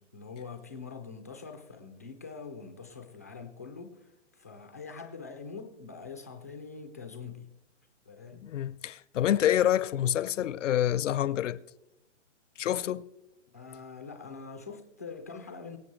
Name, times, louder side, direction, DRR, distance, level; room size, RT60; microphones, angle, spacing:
voice 1, 0.0-7.6 8.1-8.6 13.5-15.8, left 5 dB, 15° left, 0.3 m, -44 dB
voice 2, 8.4-11.6 12.6-13.1, left 11 dB, 80° left, 0.7 m, -27 dB
23.0 x 8.2 x 3.2 m
hypercardioid pair, 160°, 37 cm